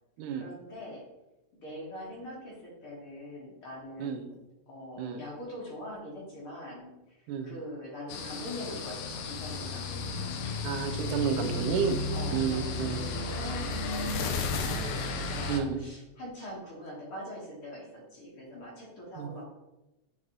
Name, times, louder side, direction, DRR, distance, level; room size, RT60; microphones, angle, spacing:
voice 1, 0.4-1.0 1.5-4.4 4.7-7.2 7.4-10.3 12.1-19.5, left 1 dB, 50° left, -4 dB, 2.2 m, -43 dB
sound 1, 8.1-15.6, left 3 dB, 80° left, 2.1 m, -33 dB
voice 2, 10.6-12.0 12.3-13.0 15.5-15.8 19.2-19.3, right 7 dB, 90° right, 7 dB, 2.1 m, -30 dB
8.5 x 4.0 x 3.0 m, 0.97 s
omnidirectional pair, 3.5 m